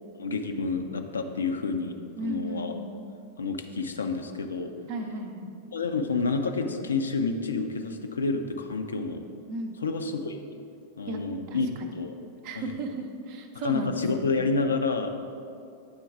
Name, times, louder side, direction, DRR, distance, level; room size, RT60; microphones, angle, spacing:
voice 1, 0.2-2.0 2.2-2.7 3.4-4.7 5.7-9.2 9.8-10.4 11.0-11.7 11.9-12.1 12.6-12.7 13.5-15.1, left 4 dB, 70° left, 6 dB, 0.5 m, -29 dB
voice 2, 2.2-2.9 4.9-5.5 9.5-9.8 11.1-11.2 11.5-12.0 12.4-14.3, right 2 dB, 45° right, 5 dB, 0.6 m, -35 dB
8.7 x 3.8 x 4.6 m, 2.5 s
figure-of-eight pair, 90°, 0 cm